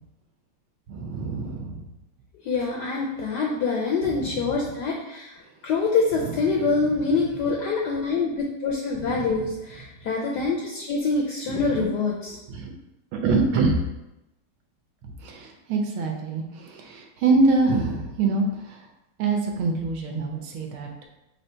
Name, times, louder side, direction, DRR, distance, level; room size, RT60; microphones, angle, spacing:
voice 1, 0.9-1.8 4.0-4.6 6.2-6.8 9.1-9.3 11.5-11.9 12.5-12.7 13.1-13.8 15.2-18.8 19.2-21.1, right 3 dB, 75° right, 2 dB, 1.5 m, -25 dB
voice 2, 2.4-12.4, left 4 dB, 75° left, -1 dB, 1.0 m, -25 dB
4.0 x 2.8 x 4.3 m, 0.92 s
omnidirectional pair, 2.3 m